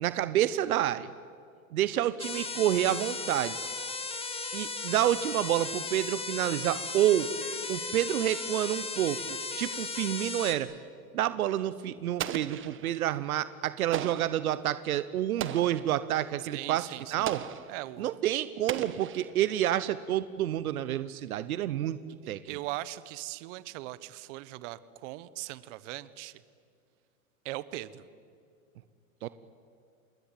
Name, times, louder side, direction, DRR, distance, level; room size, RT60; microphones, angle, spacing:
voice 1, 0.0-1.1 1.7-3.5 4.5-7.3 7.7-10.7 11.1-17.4 18.0-22.0 22.3-22.4 29.2-29.3, right 12 dB, 80° right, 14 dB, 1.1 m, -29 dB
sound 1, 2.2-10.5, left 4 dB, 15° left, 2.3 m, -36 dB
Explosion, 12.2-13.1 13.9-14.5 15.4-15.9 17.3-17.8 18.7-19.6, right 10 dB, 30° right, 1.4 m, -37 dB
voice 2, 16.4-17.3 17.7-18.1 22.2-26.4 27.4-28.0, right 17 dB, 55° right, 16 dB, 1.3 m, -40 dB
27.0 x 21.5 x 9.1 m, 2.3 s
hypercardioid pair, 115°, 43 cm